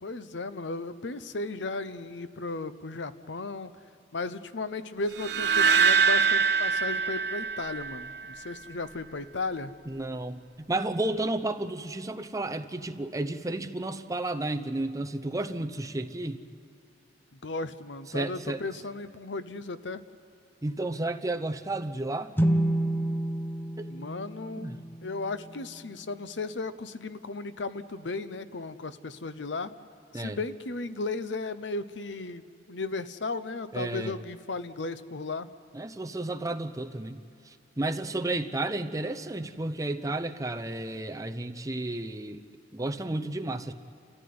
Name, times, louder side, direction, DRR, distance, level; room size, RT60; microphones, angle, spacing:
voice 1, 0.0-3.7 4.1-9.7 17.4-20.0 23.9-29.7 30.1-35.5, left 3 dB, 75° left, 13 dB, 0.8 m, -35 dB
sound 1, 5.2-8.3, right 5 dB, 65° right, 1.1 m, -24 dB
voice 2, 9.8-16.4 18.1-18.6 20.6-22.3 23.8-23.9 24.6-24.8 30.1-30.4 33.7-34.2 35.7-42.4 42.7-43.7, right 2 dB, 20° right, 7 dB, 0.8 m, -32 dB
sound 2, 22.4-25.9, right 1 dB, 10° left, 0.9 m, -29 dB
30.0 x 14.5 x 9.5 m, 2.4 s
head